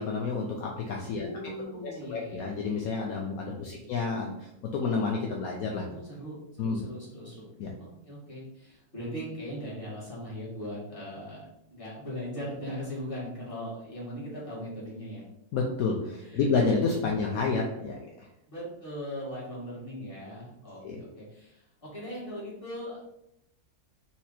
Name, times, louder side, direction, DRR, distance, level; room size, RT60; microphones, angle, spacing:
voice 1, 0.0-1.5 1.8-5.9 6.6-6.8 7.6-7.7 15.5-18.0 20.8-21.0, left 4 dB, 70° left, 0 dB, 1.0 m, -30 dB
voice 2, 1.2-2.6 3.5-3.9 5.9-7.5 7.8-11.4 11.7-15.2 16.2-16.6 18.5-23.1, equal, 20° left, -7 dB, 1.9 m, -39 dB
4.3 x 2.9 x 4.1 m, 0.81 s
omnidirectional pair, 1.7 m